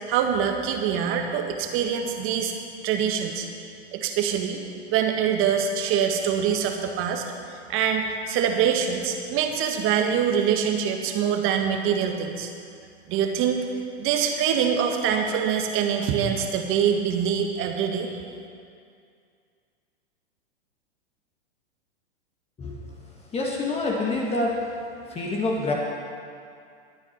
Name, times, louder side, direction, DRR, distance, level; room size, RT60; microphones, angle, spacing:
voice 1, 0.1-2.5 2.8-3.5 3.9-4.6 4.9-7.2 7.7-12.5 13.1-13.6 14.0-18.1, right 8 dB, 40° right, 4 dB, 1.8 m, -24 dB
voice 2, 23.3-24.8 25.1-25.7, left 2 dB, 20° left, -1 dB, 1.8 m, -26 dB
22.5 x 8.8 x 4.5 m, 2.3 s
hypercardioid pair, 115°, 33 cm